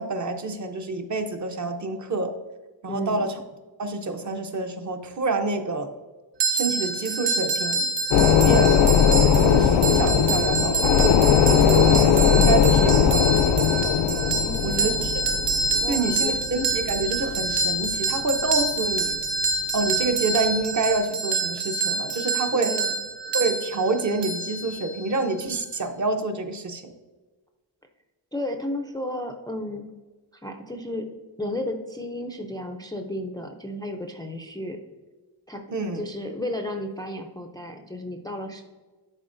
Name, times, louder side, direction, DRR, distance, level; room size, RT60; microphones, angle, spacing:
voice 1, 0.0-2.3 2.8-3.4 3.8-5.9 6.5-8.9 9.3-11.2 11.5-13.4 14.6-15.1 15.9-19.2 19.7-22.7 23.3-26.8 35.7-36.0, right 3 dB, 40° right, 6 dB, 0.7 m, -27 dB
voice 2, 2.9-3.3 14.4-15.1 15.8-16.3 22.5-22.9 28.3-29.9 30.4-31.1 31.4-34.8 35.5-35.6 35.9-38.6, left 1 dB, 10° left, 3 dB, 0.4 m, -33 dB
sound 1, 6.4-25.2, right 3 dB, 75° right, 1.0 m, -27 dB
sound 2, 8.1-18.1 18.5-18.6, left 8 dB, 75° left, 0.5 m, -19 dB
11.0 x 4.2 x 2.5 m, 1.2 s
wide cardioid pair, 155°, 43 cm